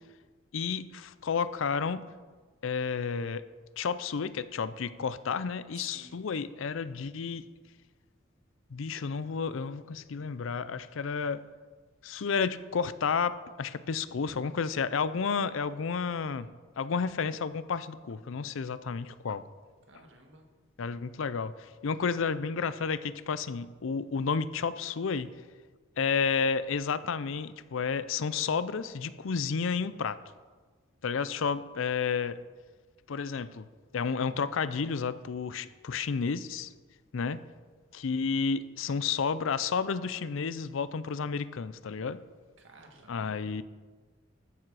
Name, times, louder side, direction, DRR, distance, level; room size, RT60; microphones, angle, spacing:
voice 1, 0.5-2.0 2.6-3.4 3.8-7.5 8.7-11.4 12.0-16.5 16.8-19.4 20.8-25.3 26.0-30.2 31.0-32.4 33.1-33.7 33.9-36.7 37.1-37.4 37.9-42.2 43.1-43.6, left 5 dB, 75° left, 15 dB, 0.5 m, -31 dB
voice 2, 5.7-6.3 19.9-20.4 42.6-43.5, right 3 dB, 70° right, 2 dB, 1.7 m, -54 dB
13.5 x 7.4 x 4.8 m, 1.4 s
head